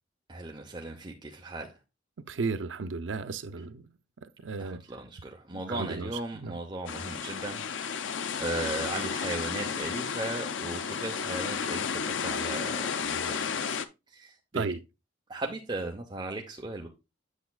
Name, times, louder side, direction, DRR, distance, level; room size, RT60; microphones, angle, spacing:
voice 1, 0.3-1.7 4.6-13.8 14.1-14.7 15.3-16.9, right 2 dB, 25° right, 0.8 m, -37 dB
voice 2, 2.3-3.8 4.4-4.8 5.7-6.6 14.5-14.8, right 4 dB, 85° right, 0.6 m, -34 dB
sound 1, 6.9-13.9, left 6 dB, 85° left, 0.5 m, -32 dB
8.2 x 6.9 x 2.3 m
head